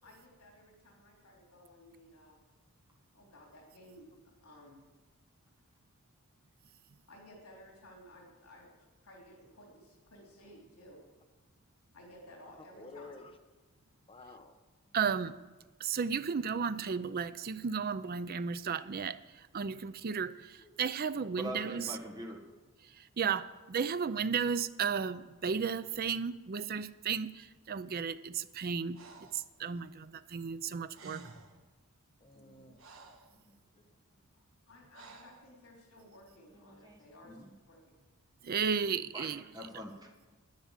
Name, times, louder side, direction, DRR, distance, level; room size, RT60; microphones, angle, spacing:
voice 1, 0.0-2.4 3.1-4.8 7.1-8.7 9.0-11.0 11.9-13.2 34.7-37.4 37.7-37.8 38.6-38.7, left 1 dB, 80° left, -1 dB, 3.1 m, -56 dB
voice 2, 12.7-13.3 14.1-14.6 20.6-20.7 32.2-32.8 33.3-33.8, left 3 dB, 25° left, 5 dB, 1.0 m, -52 dB
voice 3, 14.9-15.3 15.8-19.2 19.5-20.3 20.8-21.9 23.2-29.0 29.3-31.2 38.4-39.4, right 6 dB, 45° right, 14 dB, 0.5 m, -34 dB
voice 4, 21.3-22.4 36.6-37.5 39.1-40.3, equal, 20° right, 1 dB, 1.6 m, -44 dB
Breathing, 28.9-29.5 30.6-30.7 30.9-31.6 32.3-33.3 34.9-35.5, right 3 dB, 65° right, 1.2 m, -52 dB
10.5 x 9.8 x 7.5 m, 1.3 s
head